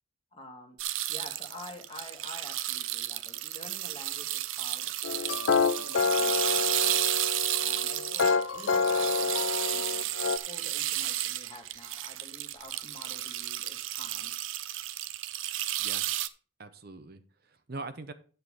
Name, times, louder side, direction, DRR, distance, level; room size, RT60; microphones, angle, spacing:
voice 1, 0.3-0.8 1.1-7.0 7.6-10.1 10.5-14.3, left 1 dB, 25° left, 4 dB, 1.9 m, -49 dB
sound 1, 0.8-16.3, right 13 dB, 75° right, 0.7 m, -32 dB
sound 2, 5.0-10.4, left 5 dB, 75° left, 0.6 m, -28 dB
voice 2, 16.6-18.1, right 3 dB, 50° right, 9 dB, 0.8 m, -42 dB
10.5 x 8.1 x 3.6 m, 0.40 s
head